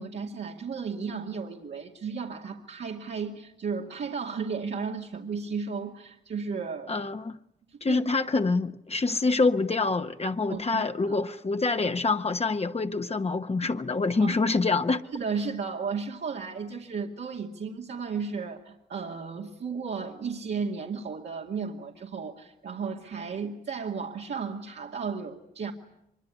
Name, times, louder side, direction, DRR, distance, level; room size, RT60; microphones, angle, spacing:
voice 1, 0.0-7.0 7.7-8.0 10.5-11.2 14.2-14.4 15.1-25.7, right 5 dB, 80° right, 2.4 m, -34 dB
voice 2, 6.9-7.4 7.8-15.1, left 3 dB, 35° left, 1.1 m, -26 dB
24.5 x 24.0 x 9.9 m
wide cardioid pair, 90°, 18 cm